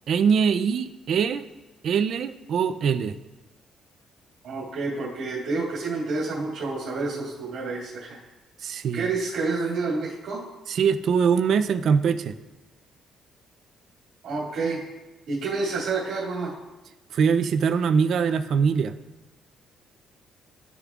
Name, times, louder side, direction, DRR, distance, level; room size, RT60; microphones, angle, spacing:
voice 1, 0.1-1.4 1.8-3.1 8.6-9.1 10.7-12.3 17.1-18.9, right 6 dB, 50° right, 10 dB, 0.4 m, -22 dB
voice 2, 4.4-8.2 8.9-10.4 14.2-14.8 15.3-16.5, right 3 dB, 70° right, -9 dB, 2.0 m, -29 dB
13.0 x 7.0 x 2.4 m, 1.1 s
cardioid pair, 160°, 0 cm